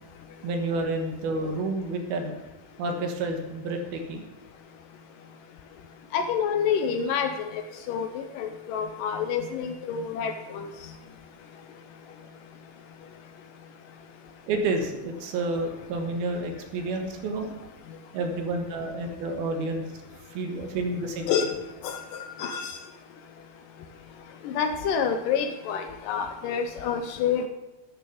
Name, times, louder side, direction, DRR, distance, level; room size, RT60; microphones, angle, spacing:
voice 1, 0.4-2.4 2.8-4.2 14.5-17.5 18.1-19.8 20.3-21.3, right 2 dB, 80° right, 4 dB, 3.3 m, -29 dB
voice 2, 6.1-7.6 7.9-10.7 21.3-21.5 21.8-22.8 24.4-27.5, left 7 dB, 80° left, 6 dB, 2.0 m, -28 dB
10.5 x 6.5 x 7.8 m, 1.0 s
omnidirectional pair, 4.3 m